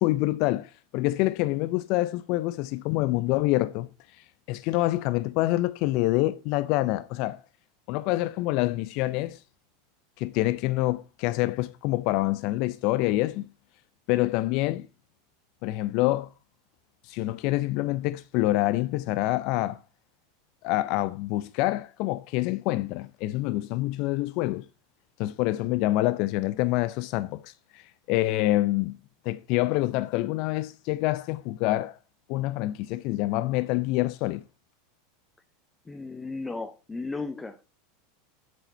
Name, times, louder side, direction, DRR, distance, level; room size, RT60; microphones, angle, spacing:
voice 1, 0.0-7.4 7.9-9.4 10.2-13.4 14.1-14.9 15.6-16.3 17.0-19.8 20.6-24.7 25.2-29.0 29.3-32.0 32.3-34.4, left 17 dB, 55° left, 0.4 m, -26 dB
voice 2, 35.8-37.6, left 3 dB, 15° left, 0.9 m, -35 dB
8.1 x 7.8 x 4.4 m
hypercardioid pair, 90°, 0 cm